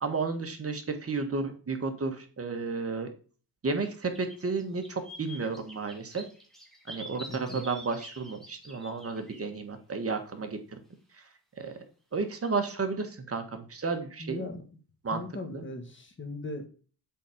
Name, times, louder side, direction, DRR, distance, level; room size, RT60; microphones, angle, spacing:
voice 1, 0.0-3.1 3.6-6.2 6.9-10.6 11.6-11.7 12.1-14.5 15.0-15.2 15.5-15.6, right 4 dB, 30° right, 5 dB, 1.4 m, -32 dB
sound 1, 3.8-3.9 4.1-9.5 12.3-12.5, equal, ahead, 1.9 m, -47 dB
voice 2, 7.3-7.6 14.2-14.6 15.1-16.6, left 2 dB, 25° left, 5 dB, 1.6 m, -38 dB
7.7 x 4.1 x 5.0 m, 0.39 s
cardioid pair, 110°, 47 cm